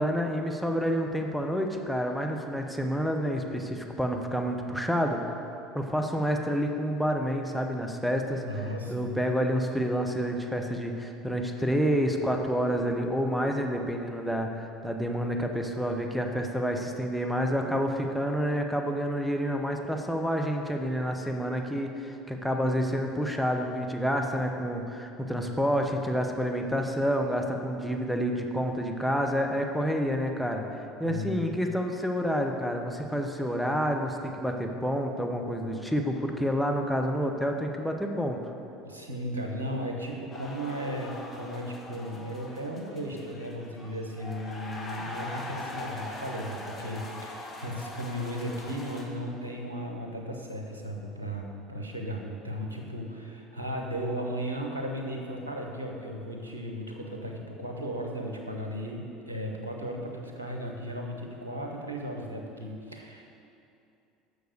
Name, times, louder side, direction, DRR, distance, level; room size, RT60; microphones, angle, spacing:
voice 1, 0.0-5.2 5.7-30.6 31.0-38.4, equal, ahead, 3 dB, 0.9 m, -29 dB
voice 2, 8.4-9.2 31.0-31.5 38.8-63.3, equal, 90° right, 1 dB, 1.0 m, -36 dB
sound 1, 40.3-49.0, left 2 dB, 30° left, 1.5 m, -42 dB
7.0 x 6.4 x 6.6 m, 2.6 s
figure-of-eight pair, 70°, 0 cm